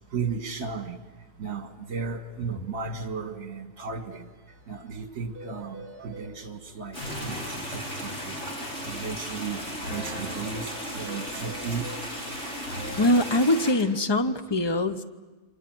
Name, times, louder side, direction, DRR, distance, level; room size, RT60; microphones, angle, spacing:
voice 1, 0.1-1.0 1.4-4.2 4.7-8.4 8.8-11.9, right 5 dB, 55° right, 7 dB, 2.3 m, -35 dB
sound 1, 4.1-4.2 4.5-4.6 4.9-5.0 5.3-6.3 11.0-12.0, right 2 dB, 30° right, 3.0 m, -44 dB
sound 2, 5.4-13.6, equal, 60° left, 8.1 m, -41 dB
sound 3, 6.9-13.7, equal, 40° left, 7.0 m, -36 dB
voice 2, 13.0-15.0, left 1 dB, 25° left, 10 dB, 0.6 m, -23 dB
28.5 x 25.0 x 7.8 m, 1.3 s
omnidirectional pair, 1.8 m